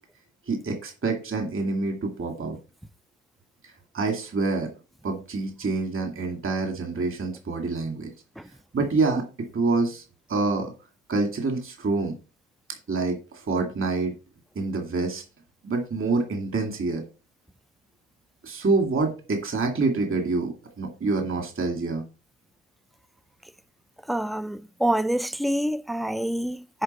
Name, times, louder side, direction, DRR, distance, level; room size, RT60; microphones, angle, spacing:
voice 1, 0.5-2.6 3.9-4.7 5.0-8.1 8.7-9.2 9.5-10.0 10.3-10.7 11.1-12.1 12.9-14.1 14.6-15.2 15.6-17.0 18.4-22.0, right 3 dB, 45° right, 2.3 m, -26 dB
voice 2, 24.1-26.8, right 1 dB, ahead, 0.4 m, -26 dB
10.0 x 3.8 x 5.4 m
cardioid pair, 90°, 30 cm